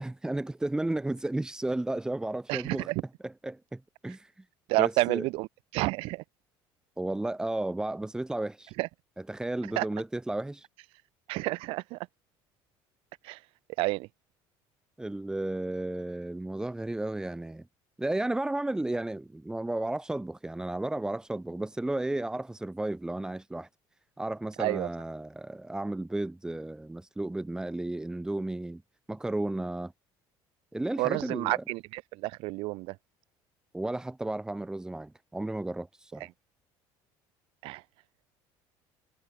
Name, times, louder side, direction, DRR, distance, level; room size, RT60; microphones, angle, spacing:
voice 1, 0.0-2.9 3.2-4.3 4.8-5.2 7.0-8.7 9.3-10.7 15.0-17.6 18.0-23.7 24.2-28.8 29.1-29.9 30.7-31.6 33.7-36.3, right 2 dB, 5° right, 5.4 m, -33 dB
voice 2, 2.5-3.0 4.7-5.5 5.7-6.2 8.8-8.9 9.8-9.9 11.3-12.0 13.2-13.4 13.8-14.1 24.6-24.9 31.0-33.0 36.2-36.3 37.6-37.8, right 22 dB, 75° right, 5.4 m, -29 dB
cardioid pair, 140°, 10 cm